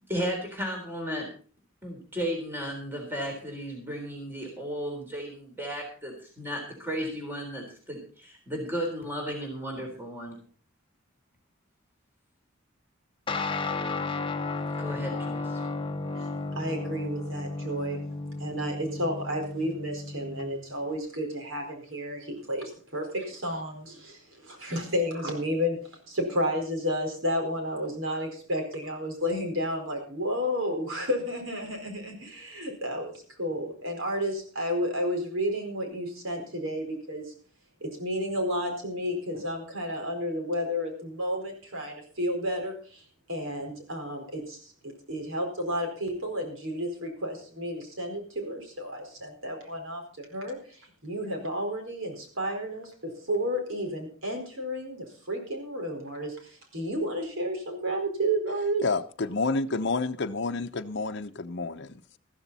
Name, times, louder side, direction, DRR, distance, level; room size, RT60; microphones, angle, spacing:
voice 1, 0.1-1.3 1.8-10.3 14.8-15.6, equal, 10° right, 1 dB, 3.8 m, -34 dB
Guitar, 13.3-21.0, left 3 dB, 25° left, 0.9 m, -33 dB
voice 2, 16.5-18.0 18.4-25.8 26.1-37.3 37.8-58.8, equal, 75° right, 3 dB, 4.6 m, -32 dB
voice 3, 58.8-62.2, left 3 dB, 60° left, 6 dB, 0.7 m, -29 dB
14.0 x 13.5 x 4.1 m, 0.42 s
head